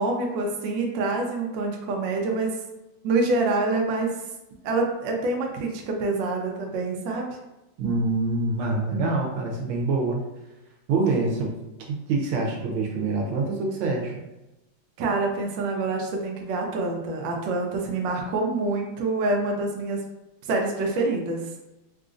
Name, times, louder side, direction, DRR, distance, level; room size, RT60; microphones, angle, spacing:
voice 1, 0.0-2.5 3.0-4.1 4.6-7.4 15.0-20.0 20.5-21.4, right 3 dB, 70° right, 1 dB, 1.2 m, -26 dB
voice 2, 7.8-10.2 10.9-11.5 11.9-14.2, right 3 dB, 90° right, 0 dB, 1.5 m, -25 dB
3.8 x 2.5 x 2.4 m, 0.97 s
omnidirectional pair, 2.2 m